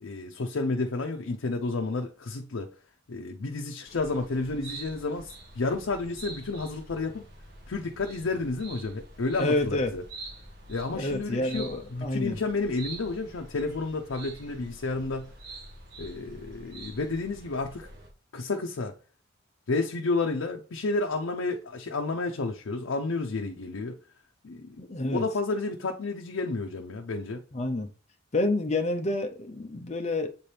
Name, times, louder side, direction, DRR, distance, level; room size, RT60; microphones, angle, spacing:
voice 1, 0.0-2.7 3.1-7.2 7.7-10.0 10.7-15.3 16.0-17.9 18.3-18.9 19.7-24.0 24.4-24.8 25.1-27.4, left 3 dB, 85° left, 0.6 m, -31 dB
sound 1, 3.9-18.1, right 2 dB, 60° right, 1.5 m, -46 dB
voice 2, 9.4-9.9 10.9-12.4 24.8-25.2 27.5-27.9 28.3-30.3, left 2 dB, 35° left, 0.6 m, -28 dB
7.5 x 4.4 x 3.3 m
head